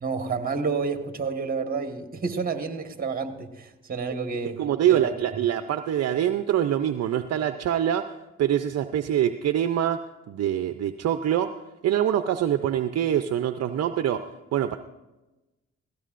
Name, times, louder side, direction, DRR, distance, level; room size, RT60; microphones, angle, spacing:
voice 1, 0.0-4.6 4.9-5.1, right 4 dB, 30° right, 6 dB, 1.5 m, -29 dB
voice 2, 4.6-8.1 8.4-10.0 10.3-11.5 11.8-14.2 14.5-14.8, right 10 dB, 55° right, 8 dB, 0.6 m, -24 dB
18.0 x 16.5 x 2.5 m, 1.1 s
cardioid pair, 90°, 30 cm